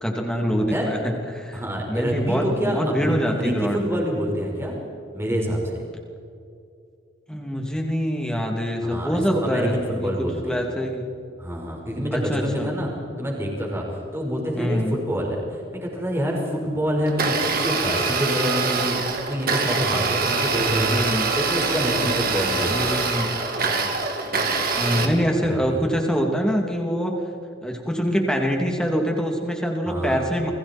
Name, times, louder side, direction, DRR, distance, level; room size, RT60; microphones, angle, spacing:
voice 1, 0.0-1.6 1.9-4.0 7.3-11.1 12.1-12.7 14.6-14.9 20.9-21.3 22.7-23.3 24.8-27.2 27.6-30.5, equal, 5° left, 1 dB, 3.0 m, -24 dB
voice 2, 1.5-4.8 5.1-5.6 8.8-10.6 11.4-12.9 13.2-13.8 14.1-19.0 19.3-21.0 21.3-23.0 24.9-25.9 29.8-30.3, equal, 15° right, -1 dB, 5.0 m, -27 dB
Domestic sounds home sounds, 17.1-25.1, right 4 dB, 50° right, 2.6 m, -24 dB
29.5 x 22.0 x 4.6 m, 2.5 s
head